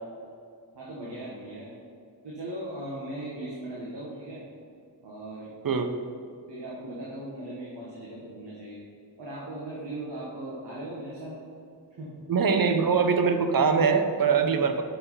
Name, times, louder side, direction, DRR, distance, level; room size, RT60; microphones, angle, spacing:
voice 1, 0.7-1.7 2.2-4.4 5.0-5.5 6.5-8.8 9.2-11.3 11.9-12.2 14.5-14.6, right 1 dB, 85° right, -6 dB, 1.4 m, -38 dB
voice 2, 12.3-14.7, right 5 dB, 55° right, 7 dB, 0.7 m, -22 dB
6.4 x 5.5 x 5.5 m, 2.2 s
wide cardioid pair, 75°, 41 cm